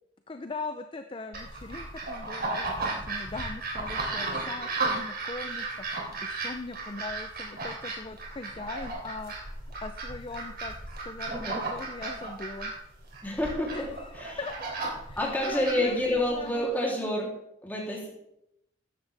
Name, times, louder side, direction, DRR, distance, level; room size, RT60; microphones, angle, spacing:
voice 1, 0.3-5.9 6.2-10.7 11.0-12.7 13.7-14.7 15.0-17.1, left 3 dB, 30° left, 8 dB, 0.5 m, -40 dB
sound 1, 1.3-16.5, right 3 dB, 55° right, 3.1 m, -35 dB
voice 2, 13.2-13.9 14.1-14.4 15.2-17.3 17.6-18.1, left 1 dB, 10° left, -3 dB, 3.1 m, -28 dB
13.5 x 10.5 x 3.4 m, 0.79 s
head